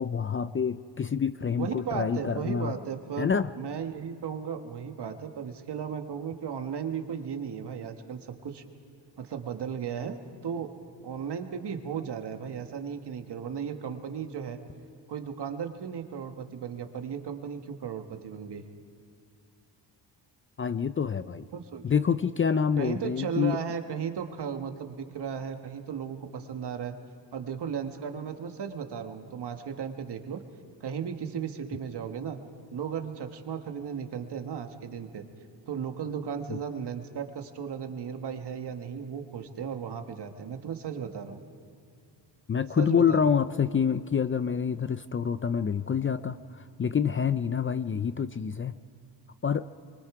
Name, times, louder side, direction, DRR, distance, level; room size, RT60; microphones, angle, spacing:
voice 1, 0.0-2.7 3.2-3.5 20.6-21.5 21.8-23.6 36.5-36.6 42.5-48.7 49.4-49.6, left 7 dB, 30° left, 13 dB, 0.4 m, -27 dB
voice 2, 1.6-8.6 9.2-10.2 10.4-10.7 11.0-14.6 15.1-18.6 21.5-21.8 22.8-26.9 27.3-30.4 30.8-32.4 32.7-35.2 35.7-41.4 42.8-43.2, right 7 dB, 65° right, 6 dB, 1.6 m, -35 dB
25.5 x 23.5 x 4.9 m, 2.3 s
cardioid pair, 105°, 44 cm